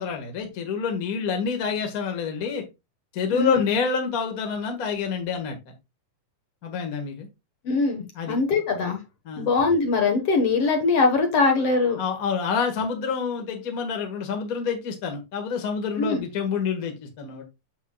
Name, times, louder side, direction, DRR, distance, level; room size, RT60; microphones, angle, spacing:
voice 1, 0.0-2.6 3.1-5.7 6.6-7.3 8.1-8.4 9.2-9.5 12.0-17.4, left 6 dB, 40° left, 4 dB, 1.5 m, -27 dB
voice 2, 7.6-9.0 9.4-12.0 16.0-16.2, left 4 dB, 55° left, 3 dB, 2.1 m, -22 dB
7.3 x 6.8 x 2.3 m, 0.23 s
omnidirectional pair, 3.6 m